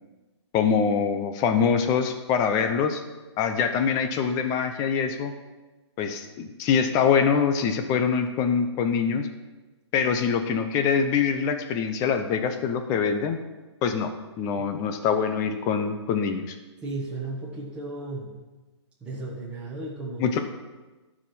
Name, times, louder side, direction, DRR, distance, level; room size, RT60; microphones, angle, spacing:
voice 1, 0.5-3.0 3.4-5.3 6.0-9.3 9.9-13.4 13.8-14.1 14.4-16.6 20.2-20.4, left 6 dB, 25° left, 7 dB, 0.8 m, -24 dB
voice 2, 16.8-18.4 19.0-20.4, right 2 dB, 10° right, -7 dB, 1.7 m, -35 dB
12.0 x 5.0 x 6.0 m, 1.2 s
hypercardioid pair, 150°, 15 cm